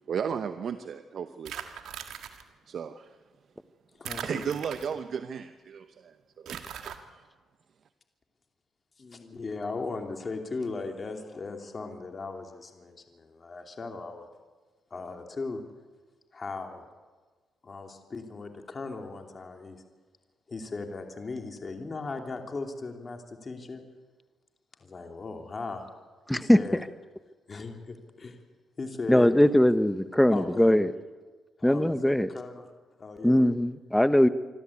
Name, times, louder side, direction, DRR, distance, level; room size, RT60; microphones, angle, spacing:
voice 1, 0.1-1.9 2.7-3.2 4.2-7.2, right 7 dB, 60° right, 10 dB, 0.9 m, -35 dB
sound 1, 1.5-2.4 4.1-5.2 6.5-7.0, right 9 dB, 75° right, 1.7 m, -40 dB
voice 2, 4.0-4.5 9.0-14.3 14.9-15.6 16.3-16.8 17.6-19.8 20.5-23.8 24.8-25.8 26.3-26.8 27.5-28.4 28.8-29.4 30.3-30.8 31.6-32.7 33.0-33.5, left 3 dB, 40° left, 4 dB, 2.8 m, -38 dB
voice 3, 29.1-30.9 31.6-32.3 33.2-34.3, left 1 dB, 5° left, 13 dB, 1.1 m, -21 dB
26.5 x 12.5 x 8.5 m, 1.3 s
cardioid pair, 70°, 0 cm